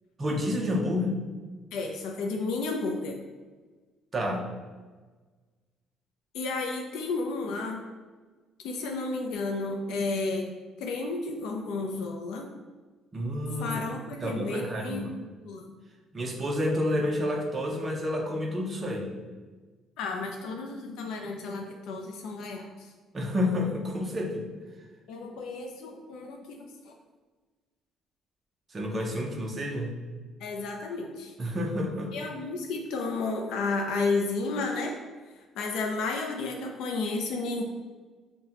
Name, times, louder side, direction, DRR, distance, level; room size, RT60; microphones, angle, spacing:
voice 1, 0.2-1.2 4.1-4.5 13.1-13.8 14.2-15.1 16.1-19.1 23.1-24.5 28.7-30.0 31.4-32.1, left 1 dB, 25° right, 1 dB, 0.5 m, -29 dB
voice 2, 1.7-3.2 6.3-7.8 8.6-10.5 10.8-12.5 13.6-15.6 20.0-22.7 25.1-26.9 30.4-31.3 32.1-34.9 35.6-37.6, left 3 dB, 80° left, 2 dB, 0.4 m, -32 dB
5.6 x 2.1 x 2.8 m, 1.4 s
cardioid pair, 160°, 0 cm